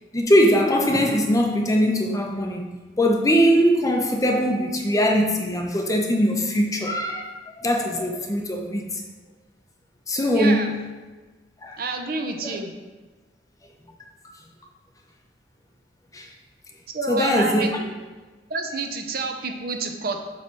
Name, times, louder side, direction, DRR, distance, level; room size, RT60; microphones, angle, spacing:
voice 1, 0.1-2.7 3.0-7.3 7.6-9.0 10.1-10.7 11.6-11.8 12.4-12.6 16.1-16.3 17.1-17.7, equal, 20° left, 1 dB, 0.7 m, -21 dB
voice 2, 10.3-10.7 11.8-12.7 16.9-17.7 18.5-20.2, right 3 dB, 55° right, 5 dB, 0.7 m, -28 dB
7.1 x 3.3 x 6.0 m, 1.3 s
head